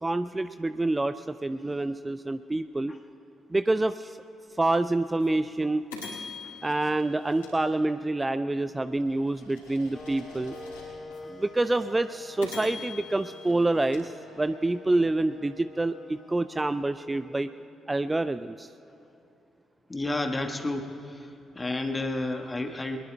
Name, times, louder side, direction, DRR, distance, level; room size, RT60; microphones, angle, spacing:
voice 1, 0.0-2.9 3.5-4.2 4.6-5.8 6.6-10.5 11.3-14.1 14.4-17.5 17.9-18.7, right 2 dB, 20° right, 11 dB, 0.4 m, -27 dB
sound 1, 4.6-4.7 5.2-5.3 5.9-8.3 8.8-11.2 11.7-11.8 12.4-14.8, left 4 dB, 80° left, 4.1 m, -44 dB
sound 2, 9.9-17.9, left 4 dB, 40° left, 1.4 m, -47 dB
voice 2, 19.9-20.9 21.5-23.0, left 2 dB, 20° left, 5 dB, 1.4 m, -30 dB
23.0 x 21.5 x 2.3 m, 2.9 s
figure-of-eight pair, 40°, 0 cm